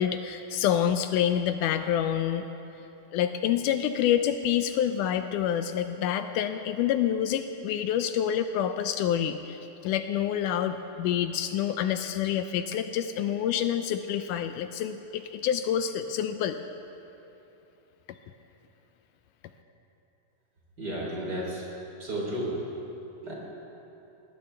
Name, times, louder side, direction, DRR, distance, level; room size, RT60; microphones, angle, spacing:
voice 1, 0.0-2.5 3.1-16.6, left 10 dB, 80° left, 9 dB, 2.0 m, -27 dB
voice 2, 20.8-21.6 22.0-22.6 23.2-23.3, right 1 dB, 30° right, -4 dB, 4.0 m, -32 dB
21.5 x 19.0 x 3.4 m, 2.9 s
omnidirectional pair, 3.7 m